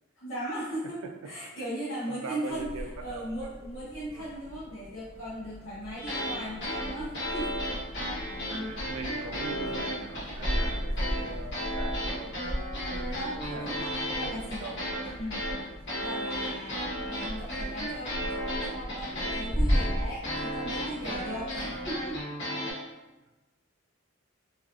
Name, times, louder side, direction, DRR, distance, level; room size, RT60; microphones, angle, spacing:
voice 1, 0.2-1.0 1.2-2.7 3.0-7.5 13.1-14.8 15.1-15.5 16.0-22.2, right 1 dB, 80° left, -9 dB, 0.7 m, -38 dB
voice 2, 2.1-2.8 3.1-3.5 4.1-4.3 8.6-12.4 13.5-13.7 14.2-15.1, right 4 dB, 90° right, 4 dB, 0.4 m, -41 dB
sound 1, 2.5-22.2, equal, 25° left, 1.2 m, -36 dB
sound 2, 6.0-6.4 6.6-10.7 11.0-22.7, equal, 50° left, 0.8 m, -34 dB
2.5 x 2.4 x 2.4 m, 1.1 s
head